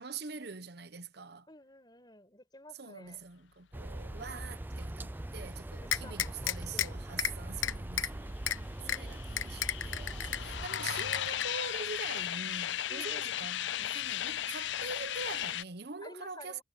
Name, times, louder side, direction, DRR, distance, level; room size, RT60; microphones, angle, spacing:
voice 1, 0.0-1.5 2.7-16.6, right 4 dB, 55° right, 1.0 m, -44 dB
voice 2, 1.5-3.2 5.8-7.0 8.8-9.5 12.9-13.3 16.0-16.6, left 1 dB, 20° left, 5.9 m, -53 dB
sound 1, 3.7-10.7, right 1 dB, 10° right, 0.4 m, -41 dB
sound 2, 5.9-6.9 7.2-7.3 7.6-8.1 8.5-8.6 8.9-9.0 9.4-10.4 10.7-11.4, left 10 dB, 85° left, 0.9 m, -31 dB
sound 3, 8.5-15.6, left 11 dB, 65° left, 0.4 m, -36 dB
head